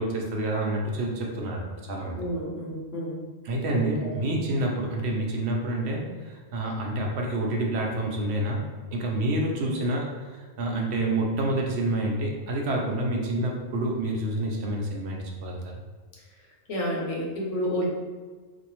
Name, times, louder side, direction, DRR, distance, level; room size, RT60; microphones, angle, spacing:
voice 1, 0.0-2.2 3.4-8.6 8.9-15.6, right 1 dB, 65° right, 0 dB, 0.9 m, -28 dB
voice 2, 2.2-3.1 4.0-4.1 16.7-17.9, equal, 85° left, -3 dB, 1.2 m, -30 dB
4.1 x 2.6 x 3.0 m, 1.4 s
omnidirectional pair, 1.2 m